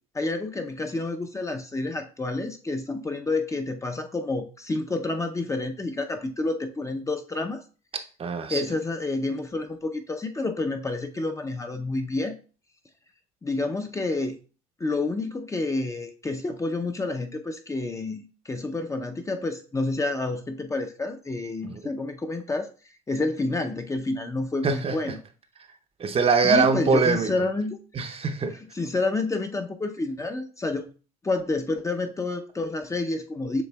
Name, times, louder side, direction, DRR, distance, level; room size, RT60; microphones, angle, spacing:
voice 1, 0.1-7.6 8.5-12.3 13.4-14.4 14.8-22.7 23.1-25.2 26.4-27.8 28.5-30.8 31.2-33.6, left 2 dB, 15° left, 6 dB, 0.6 m, -29 dB
voice 2, 8.2-8.7 21.6-21.8 24.6-25.0 26.0-27.3 27.9-28.6, right 5 dB, 35° right, 6 dB, 0.7 m, -23 dB
7.0 x 3.3 x 2.2 m, 0.38 s
hypercardioid pair, 65°, 18 cm